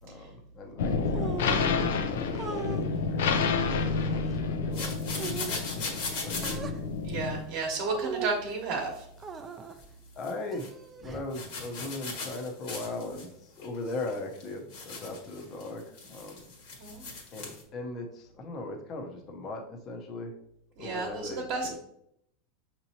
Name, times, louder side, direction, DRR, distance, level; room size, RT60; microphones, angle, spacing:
voice 1, 0.0-1.8 2.1-6.6 10.1-10.7 11.0-15.8 16.1-16.4 17.3-20.3 20.8-21.8, left 2 dB, 30° left, 2 dB, 0.6 m, -39 dB
sound 1, 0.8-7.4, left 4 dB, 90° left, 0.5 m, -29 dB
sound 2, 1.1-1.7 2.3-2.8 3.6-4.4 5.2-5.6 6.4-6.8 7.9-8.5 9.2-9.8 10.5-11.3, right 5 dB, 20° right, 0.4 m, -39 dB
sound 3, 4.7-6.6 9.7-9.8 10.2-10.7 11.3-13.3 13.6-17.6, left 3 dB, 55° left, 1.3 m, -39 dB
voice 2, 7.0-9.0 16.8-17.0 20.8-21.8, right 3 dB, 50° right, 0 dB, 1.0 m, -32 dB
6.1 x 2.9 x 2.8 m, 0.73 s
supercardioid pair, 150°, 0 cm